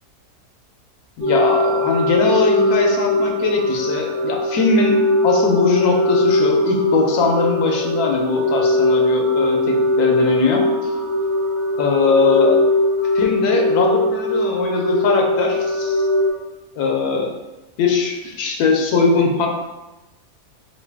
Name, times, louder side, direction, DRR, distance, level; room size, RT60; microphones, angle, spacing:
voice 1, 1.2-10.9 11.8-12.6 13.1-16.1 16.7-17.3 17.8-19.5, left 4 dB, 90° left, 1 dB, 1.1 m, -20 dB
sound 1, 1.2-16.3, left 1 dB, 40° right, 0.7 m, -20 dB
3.1 x 2.5 x 3.4 m, 1.1 s
omnidirectional pair, 1.6 m